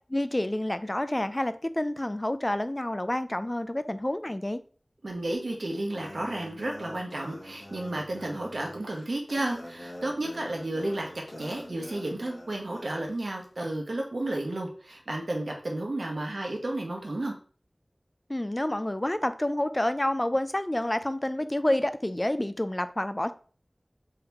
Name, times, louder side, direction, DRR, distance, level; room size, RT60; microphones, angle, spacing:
voice 1, 0.1-4.6 18.3-23.3, left 1 dB, 30° left, 0.3 m, -28 dB
voice 2, 5.0-11.1 11.4-17.3, right 1 dB, 90° right, 0.9 m, -32 dB
sound 1, 5.9-12.9, left 1 dB, 70° left, 1.3 m, -45 dB
3.7 x 2.9 x 3.4 m
wide cardioid pair, 45°, 0 cm